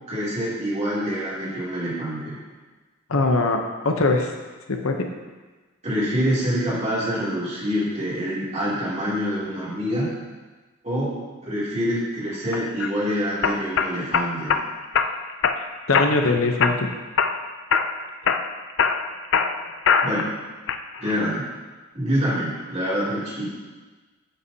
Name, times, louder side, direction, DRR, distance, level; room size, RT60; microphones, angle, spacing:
voice 1, 0.1-2.4 5.8-10.1 10.8-11.1 11.4-14.6 20.0-20.3 21.0-21.4 21.9-23.5, equal, 30° right, -8 dB, 2.8 m, -26 dB
voice 2, 3.1-4.3 4.7-5.1 15.9-16.9, left 3 dB, 75° left, 3 dB, 0.8 m, -21 dB
sound 1, 12.5-12.9 13.4-14.6 14.9-15.6 15.9-16.3 16.6-17.4 17.7-17.9 18.3-20.3 20.7-21.2, left 6 dB, 55° left, 0.4 m, -22 dB
9.7 x 8.1 x 2.8 m, 1.3 s
head